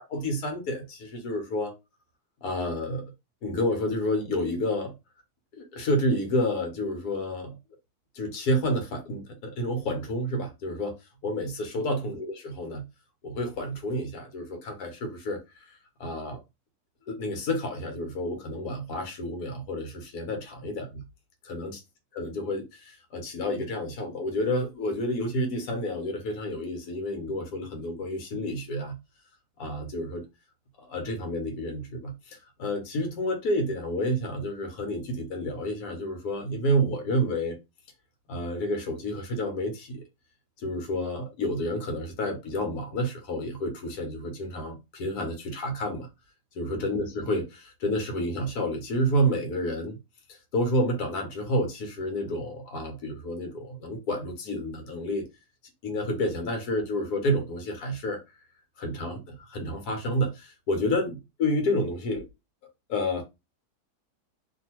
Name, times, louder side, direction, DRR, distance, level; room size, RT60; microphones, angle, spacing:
voice 1, 0.1-1.7 2.4-3.0 3.4-4.9 5.5-7.6 8.1-11.0 11.2-12.8 13.2-15.7 16.0-16.4 17.1-21.0 21.4-21.8 22.1-29.0 29.6-30.2 30.8-37.6 38.3-40.0 40.6-46.1 46.6-50.0 50.5-55.2 55.8-58.2 58.8-62.3 62.9-63.2, equal, 80° left, 1.4 m, -29 dB
2.7 x 2.7 x 2.9 m
omnidirectional pair, 1.7 m